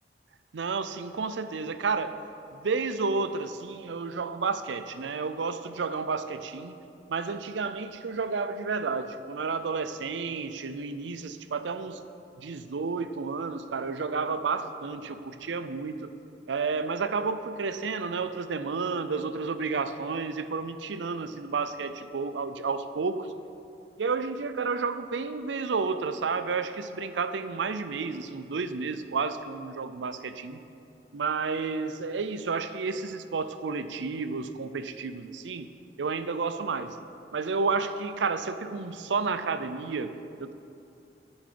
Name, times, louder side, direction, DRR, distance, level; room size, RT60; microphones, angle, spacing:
voice 1, 0.5-2.2 2.5-6.8 7.1-12.0 12.4-16.1 16.5-23.3 24.0-30.6 31.1-35.7 36.0-37.0 37.3-40.5, right 4 dB, 90° right, 11 dB, 0.5 m, -31 dB
11.0 x 7.2 x 5.1 m, 2.7 s
head